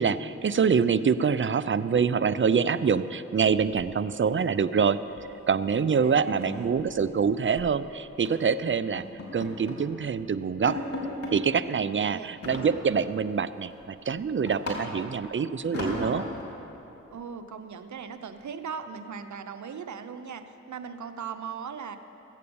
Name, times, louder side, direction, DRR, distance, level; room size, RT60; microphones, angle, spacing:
voice 1, 0.0-5.0 5.5-9.0 9.3-10.8 11.3-16.2, right 6 dB, 40° right, 14 dB, 0.5 m, -25 dB
sound 1, 3.5-4.3 4.6-4.8 5.2-5.4 5.7-5.8 6.2-7.7 8.2-8.5 9.0-9.9 10.2-10.3 10.7-11.4 12.4-13.2 13.6-15.2 15.7-16.5, left 2 dB, 55° left, 3.2 m, -37 dB
voice 2, 5.9-6.8 11.8-12.3 17.1-22.0, right 6 dB, 75° right, 9 dB, 0.8 m, -39 dB
15.5 x 8.2 x 7.0 m, 3.0 s
cardioid pair, 45°, 29 cm